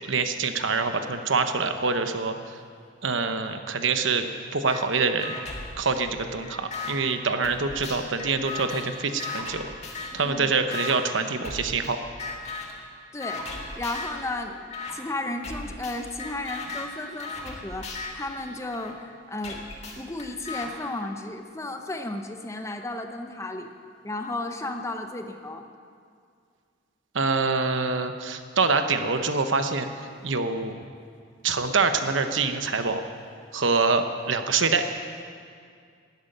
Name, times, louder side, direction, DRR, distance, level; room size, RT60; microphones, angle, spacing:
voice 1, 0.0-2.3 3.0-5.4 5.8-9.7 10.1-12.0 27.1-29.9 30.2-30.8 31.4-33.0 33.5-34.8, right 4 dB, 80° right, 7 dB, 1.0 m, -25 dB
sound 1, 4.7-4.8 5.2-6.9 7.4-10.3 10.7-10.9 11.4-11.9 12.2-12.8 13.2-14.2 14.7-14.9 15.4-18.9 19.4-20.7, left 3 dB, 35° left, 1.9 m, -37 dB
voice 2, 10.1-10.5 13.1-13.5 13.8-19.7 20.0-23.7 24.0-25.7, left 2 dB, 15° left, 5 dB, 0.9 m, -34 dB
13.5 x 9.6 x 9.1 m, 2.2 s
head